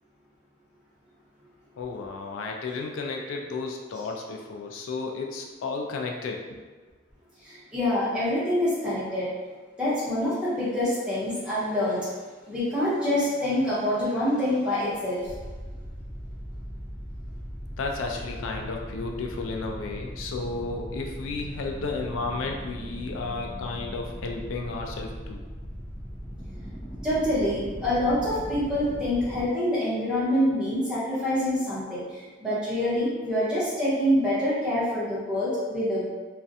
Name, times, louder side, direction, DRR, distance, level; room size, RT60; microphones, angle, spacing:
voice 1, 1.8-6.6 17.8-25.4, left 3 dB, 90° left, 1 dB, 0.3 m, -33 dB
voice 2, 7.4-9.3 9.8-12.1 12.5-15.3 27.0-36.0, left 1 dB, 5° right, -11 dB, 0.9 m, -26 dB
sound 1, 15.2-29.5, equal, 10° left, 0.4 m, -39 dB
2.4 x 2.1 x 2.7 m, 1.4 s
head